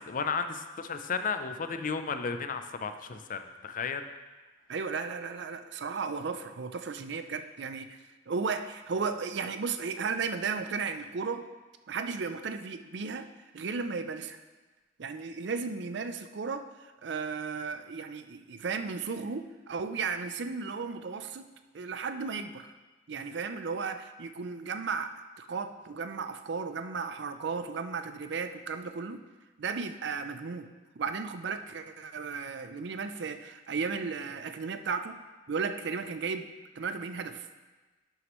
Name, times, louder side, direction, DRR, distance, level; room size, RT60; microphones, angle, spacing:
voice 1, 0.1-4.1, left 5 dB, 45° left, 8 dB, 0.5 m, -33 dB
voice 2, 4.7-8.0 8.3-11.4 11.9-13.3 13.5-14.4 15.0-21.5 21.7-22.7 23.1-29.2 29.6-30.7 31.0-35.2 35.5-36.5 36.8-37.5, right 5 dB, 65° right, 9 dB, 0.5 m, -35 dB
11.0 x 6.4 x 3.1 m, 1.2 s
head